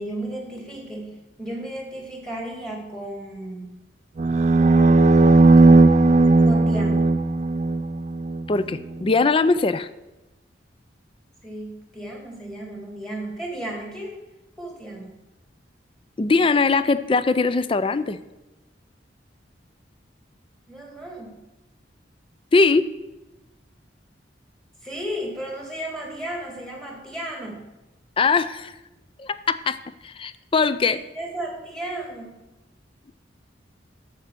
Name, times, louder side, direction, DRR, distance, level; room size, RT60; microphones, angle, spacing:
voice 1, 0.0-3.7 6.4-7.1 11.4-14.2 14.6-15.2 20.7-21.4 24.8-27.7 30.8-32.4, right 1 dB, 5° left, 0 dB, 2.3 m, -34 dB
sound 1, 4.2-8.5, right 2 dB, 40° right, 0.4 m, -16 dB
voice 2, 8.5-9.9 16.2-18.2 22.5-22.9 28.2-28.7 29.2-29.8 30.0-31.0, left 4 dB, 30° left, 14 dB, 0.4 m, -21 dB
9.2 x 7.5 x 6.9 m, 1.0 s
head